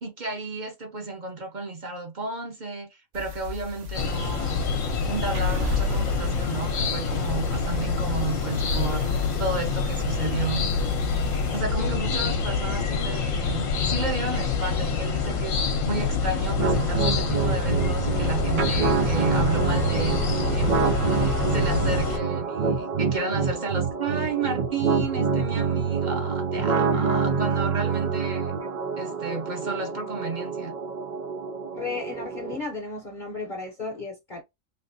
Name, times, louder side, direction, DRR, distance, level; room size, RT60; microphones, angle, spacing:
voice 1, 0.0-4.7 5.1-10.6 11.5-28.5 29.0-30.7, right 3 dB, 40° right, 0.8 m, -32 dB
sound 1, 3.1-11.6, left 4 dB, 65° right, 1.2 m, -36 dB
sound 2, 3.9-22.2, left 4 dB, 75° left, 1.1 m, -26 dB
sound 3, 16.6-32.6, right 5 dB, 80° right, 0.4 m, -26 dB
voice 2, 26.8-27.1 27.8-28.2 31.7-34.4, left 3 dB, 45° left, 0.8 m, -35 dB
3.4 x 2.5 x 2.6 m
omnidirectional pair, 1.5 m